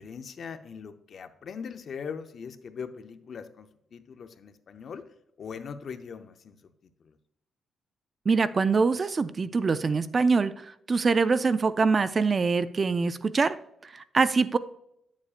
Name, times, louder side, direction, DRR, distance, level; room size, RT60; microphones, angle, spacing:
voice 1, 0.0-5.0 5.4-6.7 7.0-7.2, left 6 dB, 50° left, 9 dB, 0.7 m, -40 dB
voice 2, 8.3-13.6 13.8-14.6, right 4 dB, 30° right, 14 dB, 0.3 m, -24 dB
9.8 x 7.2 x 2.4 m, 0.78 s
cardioid pair, 135°, 0 cm